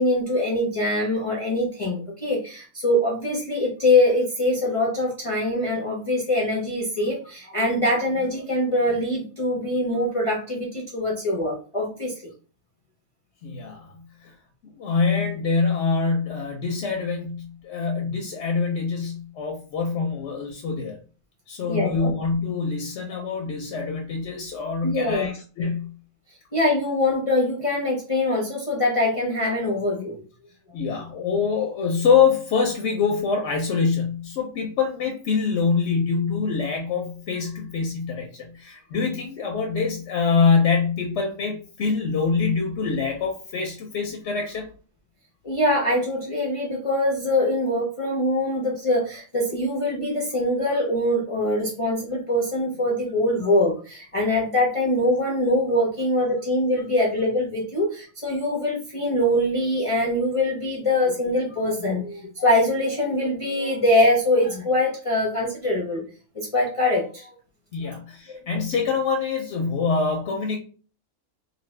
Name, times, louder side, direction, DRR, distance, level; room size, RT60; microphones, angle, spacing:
voice 1, 0.0-12.1 21.6-22.1 24.8-25.3 26.5-30.2 45.4-66.0 66.4-67.3 68.3-68.4, left 1 dB, 45° left, -4 dB, 0.4 m, -23 dB
voice 2, 13.4-14.3 14.7-21.0 21.5-25.9 30.7-44.7 67.7-70.6, left 5 dB, 65° left, 2 dB, 0.8 m, -25 dB
2.6 x 2.6 x 3.1 m, 0.39 s
omnidirectional pair, 1.5 m